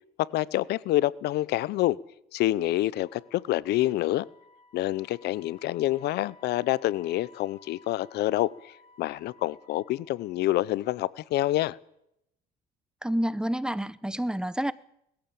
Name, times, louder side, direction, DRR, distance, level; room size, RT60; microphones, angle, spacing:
voice 1, 0.2-2.0 2.3-4.3 4.7-11.8, left 15 dB, 75° left, 0.7 m, -27 dB
Wind instrument woodwind instrument, 3.0-11.2, left 3 dB, 40° left, 4.9 m, -58 dB
voice 2, 13.0-14.7, right 1 dB, 5° right, 0.9 m, -28 dB
21.0 x 15.0 x 8.7 m
cardioid pair, 110°, 17 cm